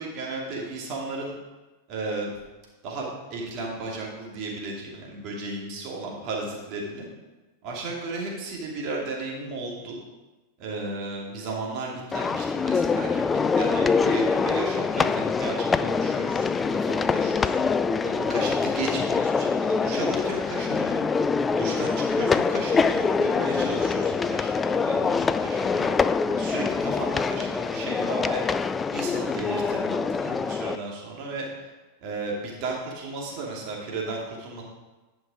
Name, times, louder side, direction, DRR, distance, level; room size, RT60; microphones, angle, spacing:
voice 1, 0.0-1.3 1.9-2.3 2.8-7.1 7.6-10.0 10.6-17.7 18.0-21.0 21.5-25.9 26.3-28.4 28.9-31.7 32.0-34.6, right 3 dB, 40° right, -2 dB, 2.6 m, -34 dB
sound 1, 12.1-30.8, left 5 dB, 15° left, 0.3 m, -24 dB
11.0 x 5.8 x 5.0 m, 1.2 s
figure-of-eight pair, 90°, 0 cm